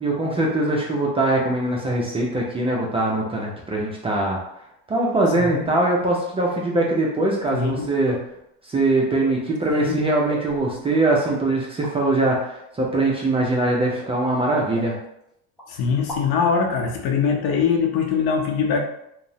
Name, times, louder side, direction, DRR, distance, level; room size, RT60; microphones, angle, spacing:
voice 1, 0.0-4.4 4.9-8.2 8.6-15.0, right 2 dB, 15° right, -3 dB, 0.3 m, -22 dB
voice 2, 7.5-7.9 9.7-10.0 15.7-18.8, left 6 dB, 70° left, 2 dB, 0.7 m, -22 dB
sound 1, 8.1-8.4 9.2-9.4 10.3-10.8 11.2-11.4 11.8-11.9 12.9-13.2 14.0-14.2 14.7-15.3 15.6-15.7 16.0-16.4, left 1 dB, ahead, 0.8 m, -36 dB
2.8 x 2.0 x 2.6 m, 0.79 s
cardioid pair, 120°, 37 cm